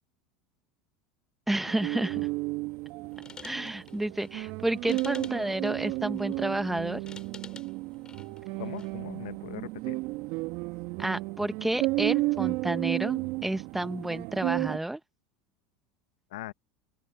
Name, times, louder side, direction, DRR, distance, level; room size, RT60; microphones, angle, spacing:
voice 1, 1.5-2.3 3.4-7.0 11.0-15.0, right 1 dB, 5° right, 1.3 m, -30 dB
sound 1, 1.7-14.8, right 22 dB, 60° right, 2.2 m, -33 dB
sound 2, 3.1-9.0, left 5 dB, 25° left, 7.0 m, -51 dB
voice 2, 8.6-10.0 16.3-16.5, left 17 dB, 75° left, 1.1 m, -40 dB
open air
hypercardioid pair, 90°, 4 cm